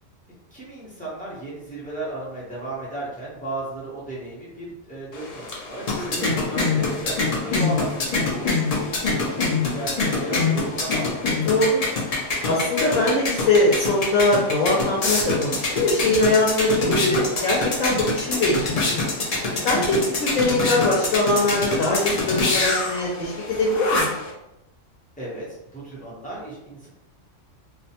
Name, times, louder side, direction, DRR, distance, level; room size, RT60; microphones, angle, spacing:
voice 1, 0.5-11.2 25.2-26.9, right 2 dB, 10° left, -8 dB, 0.6 m, -35 dB
sound 1, 5.1-24.3, left 3 dB, 70° left, 0.3 m, -25 dB
voice 2, 6.1-6.8 11.5-11.8 12.4-18.9 19.6-24.1, left 2 dB, 85° left, -3 dB, 1.0 m, -22 dB
2.4 x 2.1 x 2.7 m, 0.89 s
omnidirectional pair, 1.3 m